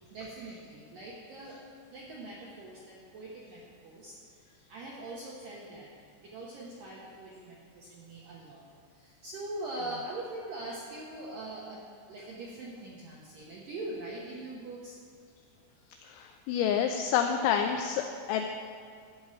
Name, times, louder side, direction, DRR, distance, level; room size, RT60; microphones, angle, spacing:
voice 1, 0.1-1.6 1.9-5.9 6.2-8.7 8.9-11.8 12.1-15.0, right 2 dB, 75° right, -4 dB, 2.0 m, -42 dB
voice 2, 16.0-18.0 18.3-18.5, left 8 dB, 85° left, 5 dB, 2.8 m, -28 dB
14.0 x 4.9 x 8.6 m, 2.1 s
omnidirectional pair, 5.7 m